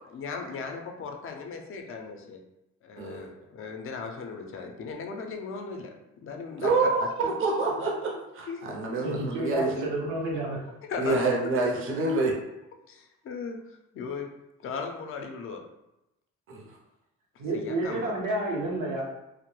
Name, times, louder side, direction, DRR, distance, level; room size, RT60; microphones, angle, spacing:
voice 1, 0.1-2.4 2.8-5.9 6.2-7.4 8.5-8.6 10.9-11.2 12.9-14.3 14.6-15.6 17.5-18.1, left 5 dB, 45° left, 3 dB, 0.4 m, -37 dB
voice 2, 3.0-3.3 6.6-9.9 11.0-12.4 16.5-16.6, right 3 dB, 45° right, -1 dB, 0.6 m, -27 dB
voice 3, 9.0-10.6 17.4-19.0, right 2 dB, 90° right, -2 dB, 0.7 m, -30 dB
2.2 x 2.0 x 3.0 m, 0.91 s
cardioid pair, 90°, 30 cm